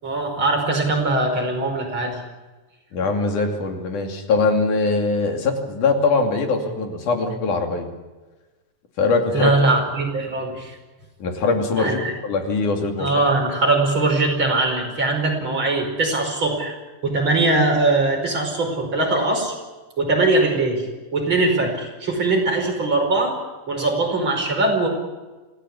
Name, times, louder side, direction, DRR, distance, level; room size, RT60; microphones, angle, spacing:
voice 1, 0.0-2.2 9.3-10.7 11.8-12.1 13.0-16.7 17.0-19.6 20.0-20.9 21.1-23.4 23.7-24.9, right 2 dB, 40° right, 1 dB, 5.9 m, -21 dB
voice 2, 2.9-7.9 9.0-9.5 11.2-13.1, left 3 dB, 85° left, 4 dB, 4.2 m, -22 dB
26.0 x 17.0 x 8.5 m, 1.2 s
omnidirectional pair, 3.4 m